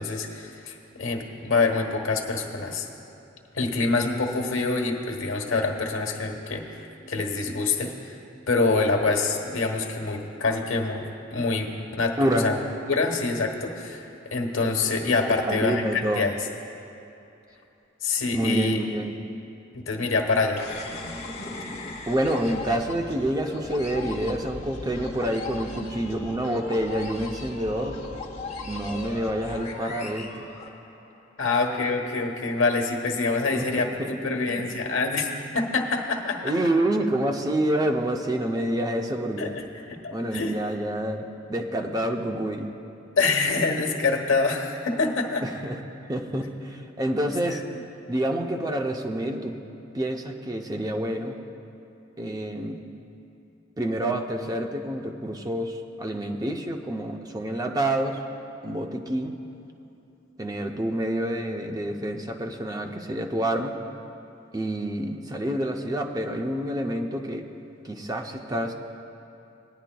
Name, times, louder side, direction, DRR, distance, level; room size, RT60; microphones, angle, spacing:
voice 1, 0.0-2.8 3.5-8.1 8.5-11.0 11.3-12.5 12.9-16.4 18.0-18.8 19.7-20.7 31.4-33.9 34.2-36.5 39.4-40.7 43.2-45.4 47.5-47.6, left 3 dB, 85° left, 2 dB, 1.1 m, -26 dB
voice 2, 12.2-12.5 15.5-16.3 18.3-19.2 22.1-28.0 28.7-30.5 33.5-34.1 36.4-39.6 40.1-42.7 45.4-45.8 46.1-47.6 48.1-49.6 49.9-51.4 52.2-52.8 53.8-58.2 58.6-59.4 60.4-63.7 64.5-67.5 67.8-68.7, right 1 dB, 20° right, 3 dB, 0.5 m, -28 dB
sound 1, 20.6-31.2, left 2 dB, 35° left, 0.9 m, -38 dB
19.0 x 10.0 x 2.2 m, 2.8 s
head